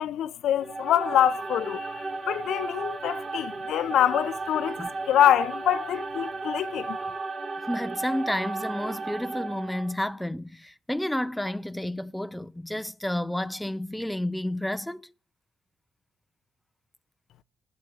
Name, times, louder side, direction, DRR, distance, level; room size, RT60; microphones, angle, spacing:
voice 1, 0.0-4.8 5.1-7.0, left 11 dB, 75° left, 0.7 m, -25 dB
sound 1, 0.6-10.0, right 3 dB, 35° right, 1.8 m, -34 dB
voice 2, 7.7-15.1, left 1 dB, 5° left, 0.6 m, -31 dB
9.9 x 8.2 x 9.5 m
cardioid pair, 90°, 0 cm